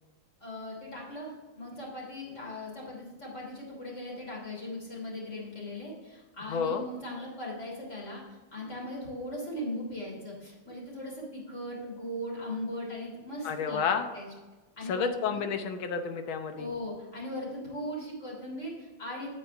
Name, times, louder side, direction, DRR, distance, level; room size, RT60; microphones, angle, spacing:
voice 1, 0.4-8.2 8.5-13.8 14.1-14.3 14.8-15.4 16.6-19.3, left 1 dB, 35° left, -3 dB, 3.4 m, -39 dB
voice 2, 6.4-6.8 13.4-14.1 14.9-16.7, left 6 dB, 85° left, 7 dB, 1.7 m, -30 dB
8.5 x 8.3 x 3.5 m, 1.3 s
omnidirectional pair, 2.2 m